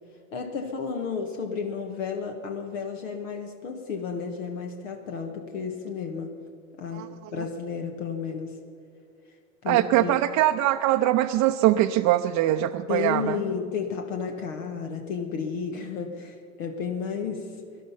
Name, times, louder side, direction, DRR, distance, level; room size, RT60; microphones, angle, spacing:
voice 1, 0.3-6.3 6.8-8.6 9.6-10.2 12.9-17.5, left 6 dB, 75° left, 4 dB, 1.4 m, -32 dB
voice 2, 9.7-13.4, right 13 dB, 50° right, 5 dB, 0.6 m, -22 dB
18.0 x 11.5 x 5.6 m, 2.1 s
hypercardioid pair, 75°, 39 cm